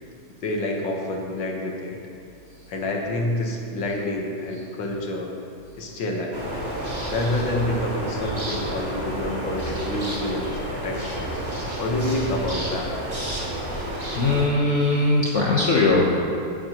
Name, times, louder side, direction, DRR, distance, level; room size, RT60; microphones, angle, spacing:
voice 1, 0.4-2.0 2.7-5.3 5.8-6.5 7.1-11.4 11.8-12.9, left 1 dB, 85° left, 0 dB, 1.9 m, -28 dB
sound 1, 6.3-14.5, right 1 dB, 25° right, 1.7 m, -30 dB
voice 2, 14.2-16.2, left 2 dB, 50° left, -4 dB, 1.1 m, -20 dB
16.5 x 7.7 x 2.9 m, 2.6 s
omnidirectional pair, 2.0 m